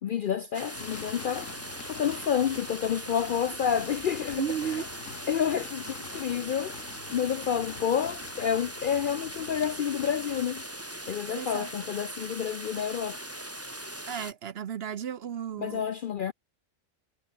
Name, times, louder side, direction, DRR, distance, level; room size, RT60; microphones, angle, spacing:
voice 1, 0.0-1.5 1.9-4.9 5.3-10.6 11.1-13.2 15.6-16.3, left 8 dB, 60° left, 0.5 m, -29 dB
sound 1, 0.5-14.3, right 1 dB, 10° right, 2.3 m, -40 dB
sound 2, 0.7-10.8, left 8 dB, 85° left, 1.5 m, -46 dB
voice 2, 4.4-4.8 11.3-11.7 14.1-15.8, right 8 dB, 55° right, 0.9 m, -33 dB
omnidirectional pair, 1.3 m